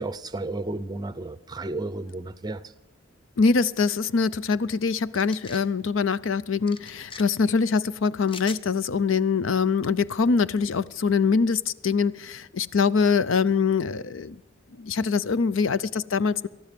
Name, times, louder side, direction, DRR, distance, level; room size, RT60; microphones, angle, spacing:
voice 1, 0.0-2.6, right 2 dB, 20° right, 0.6 m, -32 dB
voice 2, 3.4-14.4 14.8-16.5, left 5 dB, 70° left, 0.5 m, -23 dB
sound 1, 5.1-5.7 6.7-7.2 8.3-8.6, left 5 dB, 25° left, 0.6 m, -41 dB
19.5 x 13.5 x 5.2 m
head